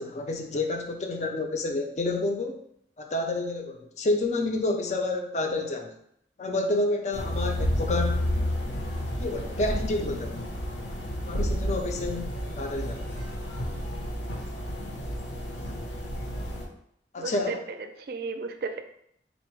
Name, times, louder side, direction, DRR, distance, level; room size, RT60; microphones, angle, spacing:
voice 1, 0.0-2.5 3.0-5.9 6.4-8.2 9.2-10.4 11.3-12.3 12.6-13.0 17.1-17.6, left 2 dB, 40° left, 3 dB, 0.4 m, -29 dB
sound 1, 7.1-16.7, equal, 80° left, 0.8 m, -31 dB
voice 2, 17.2-18.8, right 4 dB, 55° right, 7 dB, 0.4 m, -34 dB
4.0 x 2.0 x 4.4 m, 0.71 s
head